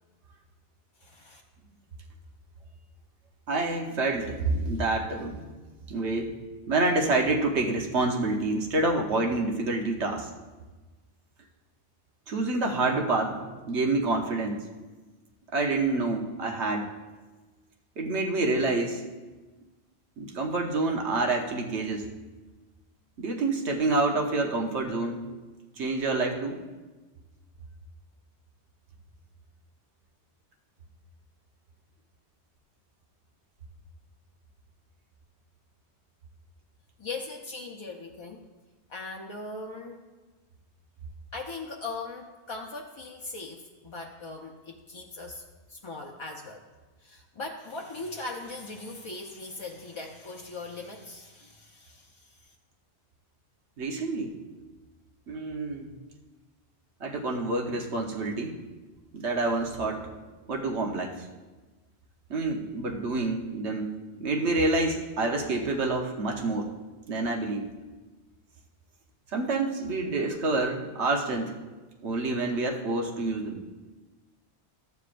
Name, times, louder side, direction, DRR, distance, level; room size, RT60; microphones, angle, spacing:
voice 1, 1.0-1.4 37.0-38.4 38.9-40.0 41.3-45.4 45.7-46.7 47.0-52.5, left 3 dB, 35° left, 0 dB, 0.5 m, -40 dB
voice 2, 3.5-5.5 5.9-6.4 6.7-10.3 12.3-14.6 15.5-16.9 18.0-19.0 20.2-22.1 23.2-25.2 25.8-26.6 53.8-54.4 55.3-55.9 57.0-58.6 59.1-60.1 60.5-61.3 62.3-66.7 67.1-67.7 69.3-71.5 72.0-73.6, right 2 dB, 85° right, 1 dB, 1.3 m, -28 dB
13.5 x 8.2 x 2.5 m, 1.2 s
omnidirectional pair, 1.1 m